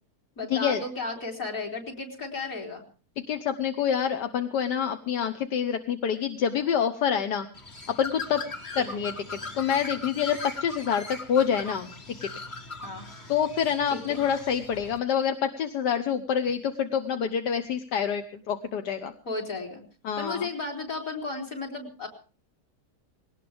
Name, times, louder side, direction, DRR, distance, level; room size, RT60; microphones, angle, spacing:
voice 1, 0.4-2.8 8.8-9.1 12.8-13.1 13.9-14.2 19.2-19.8 20.2-22.1, left 3 dB, 55° left, 1 dB, 4.1 m, -34 dB
voice 2, 3.3-7.5 7.9-8.4 8.7-11.9 12.2-12.3 13.3-19.1 20.0-20.5, left 8 dB, 80° left, 7 dB, 1.6 m, -27 dB
Bird, 7.5-15.0, left 3 dB, 30° left, 1.4 m, -40 dB
20.5 x 18.0 x 3.5 m, 0.35 s
omnidirectional pair, 1.8 m